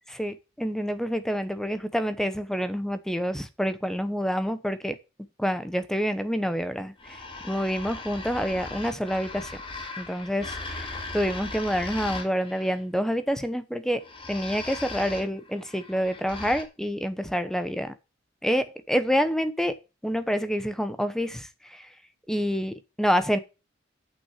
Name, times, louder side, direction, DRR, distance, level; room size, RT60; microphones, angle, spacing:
voice 1, 0.2-5.0 5.4-7.2 7.4-9.5 10.0-14.0 14.3-17.9 18.4-19.8 20.0-21.9 22.3-23.4, equal, 5° left, 1.0 m, -27 dB
sound 1, 7.0-12.8 14.0-16.6, left 3 dB, 30° left, 2.2 m, -38 dB
8.7 x 6.2 x 8.3 m
head